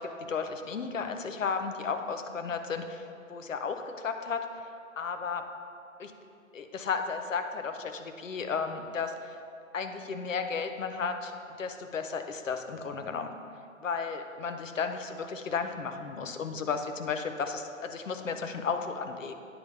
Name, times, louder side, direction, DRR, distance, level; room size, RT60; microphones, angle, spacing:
voice 1, 0.0-4.4 5.0-5.5 6.0-6.1 6.5-9.4 9.7-11.3 11.6-13.3 13.8-19.4, left 5 dB, 70° left, 7 dB, 0.7 m, -34 dB
9.0 x 5.4 x 3.4 m, 2.5 s
figure-of-eight pair, 150°, 41 cm